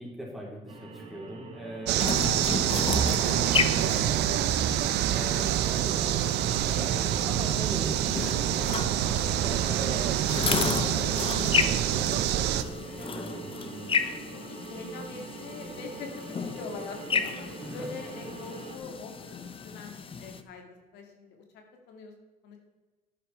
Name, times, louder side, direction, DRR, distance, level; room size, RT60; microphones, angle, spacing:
voice 1, 0.0-2.4 2.7-3.0 3.2-4.6 5.0-8.8 9.3-13.8 17.6-17.9, equal, ahead, -4 dB, 4.1 m, -41 dB
sound 1, 0.7-18.8, right 3 dB, 40° right, 2.6 m, -44 dB
sound 2, 1.9-12.6, right 11 dB, 80° right, 0.7 m, -26 dB
sound 3, 2.0-20.4, left 5 dB, 30° left, 0.9 m, -34 dB
voice 2, 7.2-7.7 14.3-16.1 16.5-20.6 20.9-21.3 21.9-22.1 22.4-22.6, left 4 dB, 85° left, 3 dB, 2.3 m, -43 dB
11.0 x 9.2 x 4.5 m, 1.2 s
cardioid pair, 110°, 17 cm